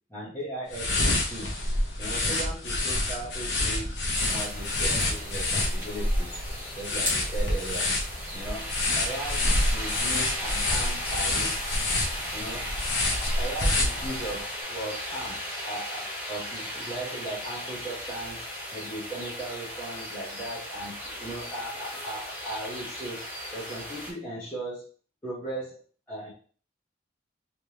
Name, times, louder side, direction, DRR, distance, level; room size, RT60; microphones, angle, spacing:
voice 1, 0.1-1.5 2.0-3.9 4.3-6.4 6.7-7.9 8.3-11.7 12.3-12.7 13.3-18.4 18.7-23.2 23.5-24.8 25.2-25.8 26.1-26.3, right 1 dB, 10° left, -10 dB, 1.1 m, -37 dB
sound 1, 0.7-14.4, left 2 dB, 65° left, 0.8 m, -28 dB
sound 2, 4.1-24.1, equal, 10° right, 1.3 m, -36 dB
3.4 x 3.3 x 2.9 m, 0.41 s
head